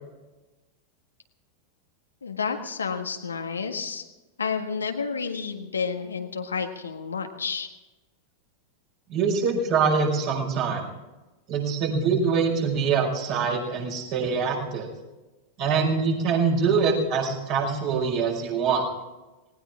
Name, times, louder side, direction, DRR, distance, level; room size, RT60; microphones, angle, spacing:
voice 1, 2.2-4.0 4.4-7.7, left 5 dB, 75° left, 5 dB, 1.6 m, -30 dB
voice 2, 9.1-10.9 11.5-14.9 15.6-18.8, right 5 dB, 45° right, 0 dB, 5.7 m, -24 dB
19.0 x 19.0 x 3.7 m, 1.1 s
figure-of-eight pair, 90°, 0 cm